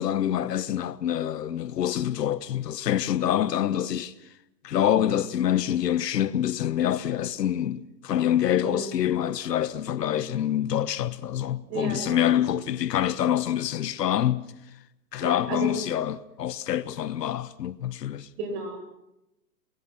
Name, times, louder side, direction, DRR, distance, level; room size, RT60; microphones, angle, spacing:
voice 1, 0.0-4.1 4.6-14.5 15.1-18.3, left 11 dB, 75° left, 1.3 m, -26 dB
voice 2, 11.7-12.2 15.1-15.8 18.4-18.8, right 2 dB, 40° right, 6.8 m, -32 dB
27.5 x 23.0 x 5.8 m
hypercardioid pair, 145°, 48 cm